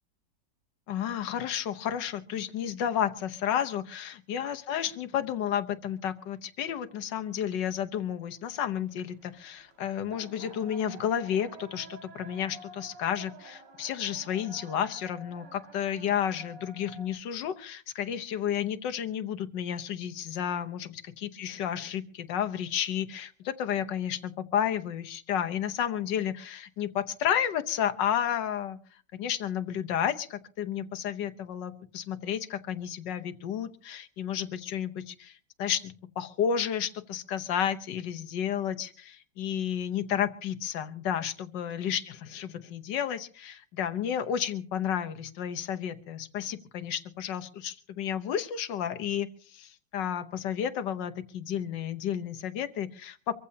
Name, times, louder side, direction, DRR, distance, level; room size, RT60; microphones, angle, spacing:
voice 1, 0.9-28.8 29.1-53.3, left 9 dB, 90° left, 9 dB, 1.6 m, -32 dB
sound 1, 8.5-17.1, right 3 dB, 80° right, 2.5 m, -50 dB
25.0 x 15.0 x 2.8 m, 0.42 s
omnidirectional pair, 1.9 m